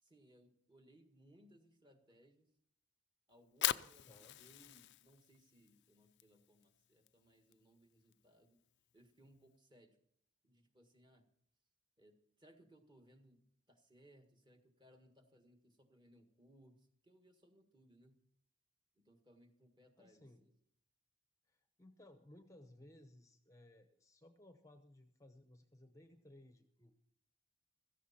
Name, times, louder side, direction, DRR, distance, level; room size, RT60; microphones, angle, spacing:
voice 1, 0.0-2.5 3.3-8.6 8.9-10.0 10.4-11.3 12.0-18.2 18.9-20.5, equal, 20° right, 5 dB, 1.7 m, -67 dB
Fire, 3.3-9.5, left 13 dB, 55° left, 0.5 m, -44 dB
voice 2, 4.0-4.4 20.0-20.4 21.5-26.9, left 1 dB, 15° left, 7 dB, 0.9 m, -61 dB
16.0 x 14.5 x 4.3 m, 0.69 s
head